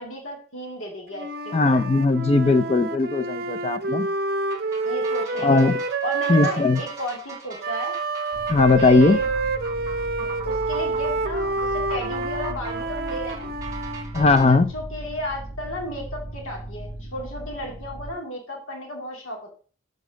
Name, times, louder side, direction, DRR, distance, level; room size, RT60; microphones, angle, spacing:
voice 1, 0.0-1.9 4.8-5.6 6.0-7.9 8.8-9.3 10.2-13.5 14.1-19.5, equal, 80° left, 1 dB, 2.3 m, -34 dB
Wind instrument woodwind instrument, 1.1-6.9 7.6-14.1, right 3 dB, 50° right, 0.6 m, -28 dB
voice 2, 1.5-4.1 5.4-5.8 6.3-6.8 8.5-9.2 14.1-14.7, left 3 dB, 30° left, 11 dB, 0.4 m, -18 dB
sound 1, 4.5-14.6, right 6 dB, 20° right, 2.0 m, -41 dB
sound 2, 8.3-18.1, right 1 dB, 50° left, 3.1 m, -37 dB
7.1 x 4.0 x 6.3 m, 0.40 s
head